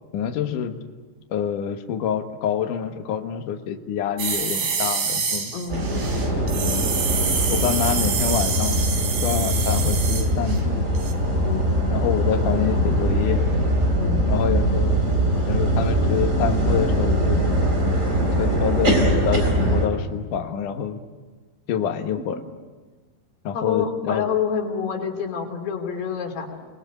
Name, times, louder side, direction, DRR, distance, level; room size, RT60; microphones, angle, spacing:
voice 1, 0.1-0.8 1.3-5.5 7.5-8.8 9.2-10.9 11.9-13.4 14.3-15.0 15.5-17.4 18.4-21.0 21.7-22.4 23.4-24.3, left 8 dB, 65° left, 5 dB, 2.5 m, -26 dB
sound 1, 4.2-10.7 10.9-11.1, right 5 dB, 70° right, 5.5 m, -27 dB
sound 2, 5.7-19.9, right 1 dB, 20° right, 4.1 m, -22 dB
voice 2, 23.5-26.6, left 7 dB, 90° left, 2 dB, 5.2 m, -27 dB
29.0 x 20.0 x 9.6 m, 1.4 s
omnidirectional pair, 4.6 m